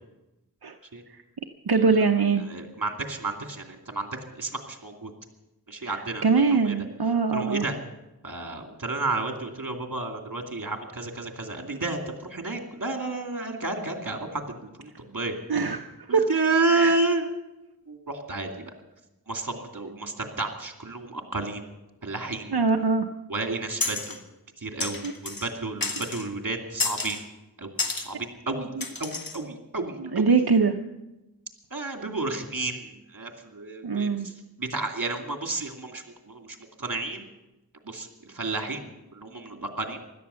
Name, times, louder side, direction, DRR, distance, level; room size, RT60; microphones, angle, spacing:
voice 1, 1.7-2.4 5.9-7.7 15.5-15.8 16.1-16.3 16.7-17.0 22.5-23.1 25.0-25.1 28.8-28.9 30.0-30.8 33.8-34.3, right 4 dB, 85° right, 4 dB, 0.8 m, -23 dB
voice 2, 2.4-5.1 5.7-6.3 6.5-6.7 7.3-7.8 8.2-12.0 12.3-15.3 16.1-17.3 17.9-18.7 19.3-21.7 22.0-22.5 23.3-24.2 24.6-27.2 27.6-28.7 29.0-30.3 31.7-34.3 34.6-37.3 37.8-38.8 39.1-40.0, right 3 dB, 55° right, 4 dB, 2.5 m, -31 dB
sound 1, 23.8-24.2 24.8-25.5 25.8-26.3 26.8-27.2 27.8-28.1 28.8-29.4, left 3 dB, 65° left, 1.6 m, -30 dB
16.5 x 12.0 x 6.9 m, 0.98 s
wide cardioid pair, 40°, 37 cm